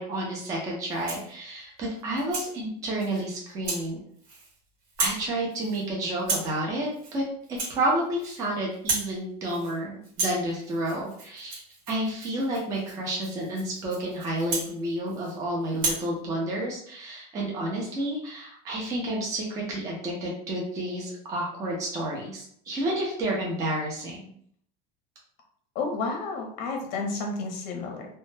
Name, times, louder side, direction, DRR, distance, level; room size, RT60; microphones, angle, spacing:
voice 1, 0.0-4.0 5.0-7.2 7.5-24.3, right 1 dB, 15° right, -3 dB, 0.4 m, -30 dB
Rattle (instrument), 0.9-1.3 1.8-2.5 3.0-3.2 3.6-3.9 4.2-4.6 4.8-5.2 5.5-5.8 6.2-6.6 6.9-7.2 7.4-8.5 8.7-9.1 9.4-9.8 10.0-15.4 15.7-16.1, right 3 dB, 85° right, 1.0 m, -33 dB
voice 2, 25.7-28.1, left 3 dB, 45° left, 2 dB, 0.6 m, -31 dB
2.1 x 2.0 x 3.1 m, 0.63 s
cardioid pair, 175°, 20 cm